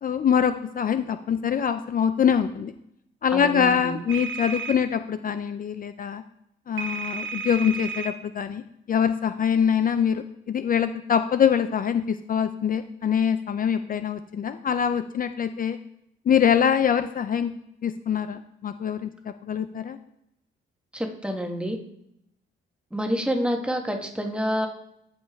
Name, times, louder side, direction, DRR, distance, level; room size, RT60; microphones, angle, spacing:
voice 1, 0.0-2.7 3.2-6.2 6.7-8.6 8.9-15.8 16.3-17.5 17.8-19.1 19.4-20.0, left 8 dB, 45° left, 10 dB, 0.5 m, -24 dB
voice 2, 3.3-4.0 20.9-21.8 22.9-24.7, equal, 5° right, 3 dB, 1.3 m, -28 dB
sound 1, 4.1-4.7 6.8-8.1, right 5 dB, 75° right, 1.1 m, -32 dB
14.0 x 5.3 x 3.5 m, 0.79 s
cardioid pair, 115°, 20 cm